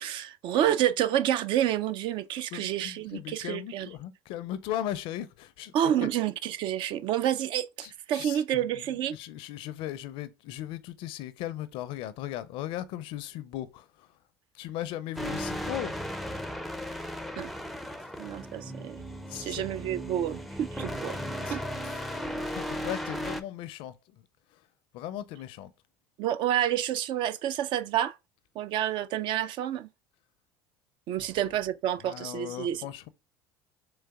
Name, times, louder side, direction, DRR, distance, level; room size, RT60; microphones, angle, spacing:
voice 1, 0.0-3.9 5.7-9.1 17.4-17.5 18.2-19.0 19.3-21.2 21.5-21.6 26.2-28.2 28.6-29.9 31.1-32.8, right 11 dB, 60° right, 0.4 m, -29 dB
voice 2, 2.5-6.1 7.8-14.1 14.5-16.0 18.0-18.1 19.3-19.7 21.4-24.2 24.5-24.6 24.9-25.7 32.0-33.1, left 12 dB, 65° left, 0.5 m, -38 dB
sound 1, 15.2-23.4, equal, ahead, 0.4 m, -36 dB
3.9 x 3.2 x 3.4 m
supercardioid pair, 95°, 10 cm